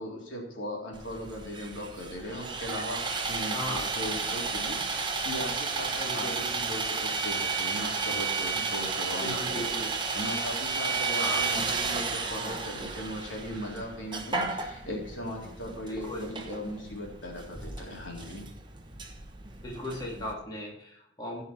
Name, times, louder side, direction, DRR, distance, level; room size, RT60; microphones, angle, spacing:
voice 1, 0.0-18.5, equal, 85° left, -1 dB, 3.4 m, -38 dB
Sawing, 0.9-20.3, right 4 dB, 25° right, 1.0 m, -33 dB
voice 2, 3.5-3.9 6.0-6.4 9.2-9.9 11.2-11.5 15.9-16.3 19.6-21.4, left 1 dB, 20° left, -3 dB, 2.3 m, -37 dB
16.0 x 5.6 x 4.5 m, 0.70 s
head